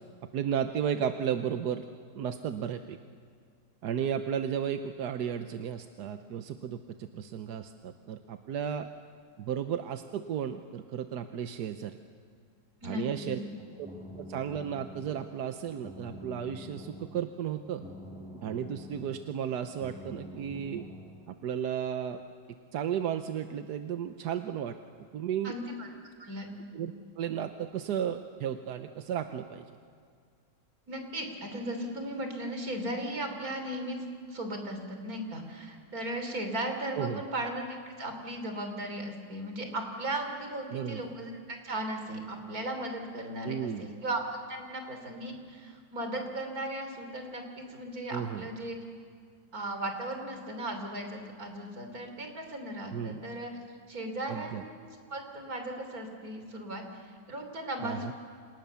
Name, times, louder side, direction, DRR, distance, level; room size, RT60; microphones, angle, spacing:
voice 1, 0.3-1.8 2.1-3.0 3.8-8.9 9.4-12.0 12.8-13.4 14.2-17.8 18.4-20.9 21.3-22.2 22.7-24.8 25.1-25.5 26.7-29.6 37.0-37.2 40.7-41.0 43.4-43.9 48.1-48.5 52.9-53.2 54.3-54.6 57.8-58.1, right 8 dB, 90° right, 8 dB, 1.5 m, -34 dB
voice 2, 12.8-13.4 25.4-25.9 26.2-26.5 30.9-34.0 34.3-44.2 44.5-48.8 49.5-53.5 53.9-58.1, right 1 dB, 65° right, 5 dB, 3.8 m, -37 dB
sound 1, 13.5-21.2, equal, 5° right, 5.4 m, -47 dB
29.5 x 27.0 x 7.0 m, 2.1 s
omnidirectional pair, 1.7 m